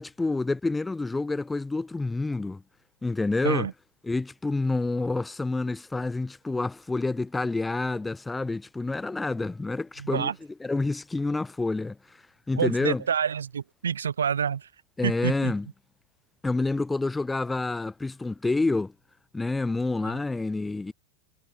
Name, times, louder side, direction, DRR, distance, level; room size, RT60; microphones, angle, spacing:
voice 1, 0.0-2.6 3.0-3.7 4.0-10.3 10.6-12.0 12.5-13.0 15.0-15.7 16.4-18.9 19.3-20.9, left 3 dB, 10° left, 0.6 m, -28 dB
voice 2, 10.0-10.4 12.6-14.7 15.0-15.5 20.0-20.2, right 7 dB, 70° right, 0.8 m, -28 dB
figure-of-eight pair, 90°, 0 cm